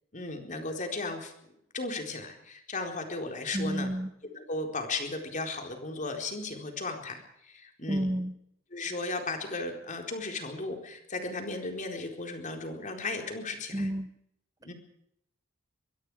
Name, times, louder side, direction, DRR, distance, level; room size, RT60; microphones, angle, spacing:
voice 1, 0.1-1.3 1.7-3.9 4.3-8.1 8.7-13.9 14.6-14.7, left 3 dB, 40° left, 4 dB, 4.3 m, -35 dB
voice 2, 3.5-4.1 7.9-8.3 13.7-14.1, equal, 20° right, 12 dB, 0.8 m, -30 dB
23.5 x 22.5 x 4.9 m, 0.75 s
head